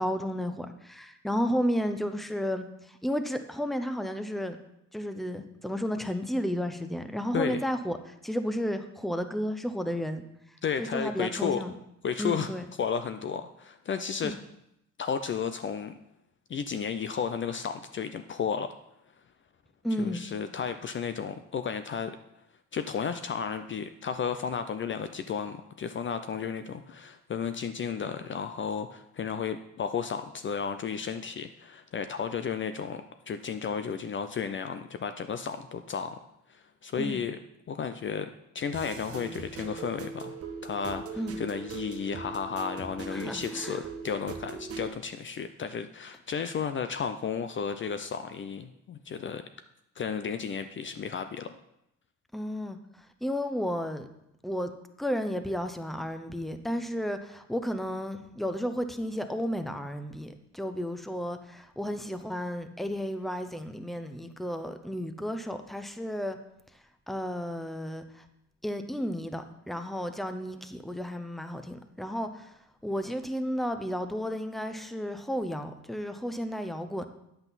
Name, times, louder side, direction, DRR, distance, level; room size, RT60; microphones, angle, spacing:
voice 1, 0.0-4.6 4.9-10.2 10.8-11.7 12.2-12.7 14.2-14.3 19.8-20.2 36.9-37.2 41.2-41.3 43.1-43.8 52.3-54.1 54.4-54.7 55.0-66.4 67.1-68.3 68.6-77.1, equal, ahead, 8 dB, 0.7 m, -33 dB
voice 2, 10.6-11.6 12.0-12.5 12.8-14.3 15.0-15.9 16.5-18.7 20.0-22.2 22.7-36.2 36.5-37.4 37.7-38.3 38.5-40.4 40.6-49.4 50.0-51.5, left 6 dB, 40° left, 9 dB, 0.5 m, -33 dB
sound 1, 38.7-44.9, right 4 dB, 50° right, 1.2 m, -40 dB
8.9 x 7.9 x 4.1 m, 0.81 s
cardioid pair, 90°, 30 cm